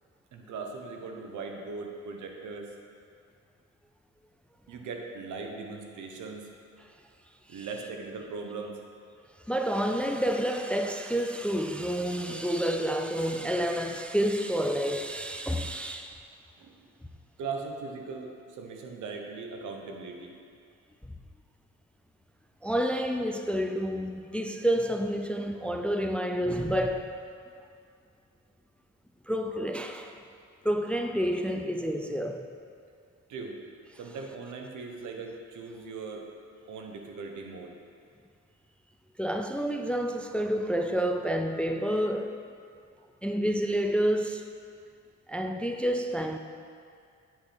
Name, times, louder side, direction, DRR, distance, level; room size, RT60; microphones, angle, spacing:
voice 1, 0.3-2.7 4.7-6.5 7.5-8.7 16.6-16.8 17.4-20.4 33.3-33.6 34.0-36.3 36.7-37.7, right 4 dB, 75° right, 1.1 m, -39 dB
voice 2, 9.5-16.2 22.6-27.1 29.3-30.1 30.6-32.5 39.2-42.4 43.2-44.5 45.3-46.4, equal, 5° left, 0.4 m, -29 dB
9.5 x 6.1 x 4.3 m
cardioid pair, 90°, 30 cm